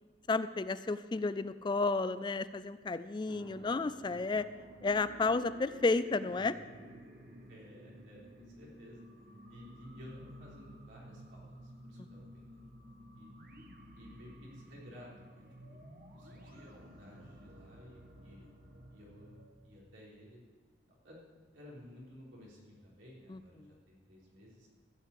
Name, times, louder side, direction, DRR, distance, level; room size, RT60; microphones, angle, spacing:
voice 1, 0.3-4.5 4.8-6.6 12.0-12.1 23.3-23.7, left 3 dB, 25° left, 14 dB, 0.3 m, -32 dB
sound 1, 3.3-19.5, equal, 50° right, 1.5 m, -53 dB
voice 2, 7.5-9.0 9.5-12.7 13.2-13.3 14.0-15.8 16.1-18.5 18.9-20.4 21.0-21.2 21.5-24.7, left 1 dB, 85° right, -5 dB, 3.7 m, -55 dB
15.0 x 5.6 x 8.5 m, 1.5 s
head